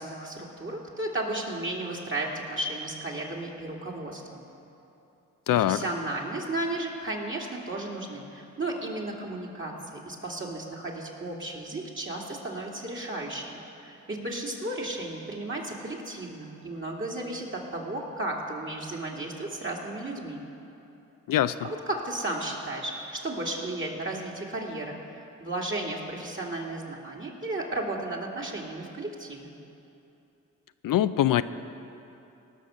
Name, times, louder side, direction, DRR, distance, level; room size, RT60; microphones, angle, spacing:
voice 1, 0.0-4.4 5.5-20.5 21.6-29.5, right 2 dB, 35° right, -2 dB, 2.6 m, -34 dB
voice 2, 5.5-5.8 21.3-21.7 30.8-31.4, left 12 dB, 75° left, 12 dB, 0.5 m, -23 dB
18.5 x 6.3 x 6.5 m, 2.8 s
cardioid pair, 55°, 33 cm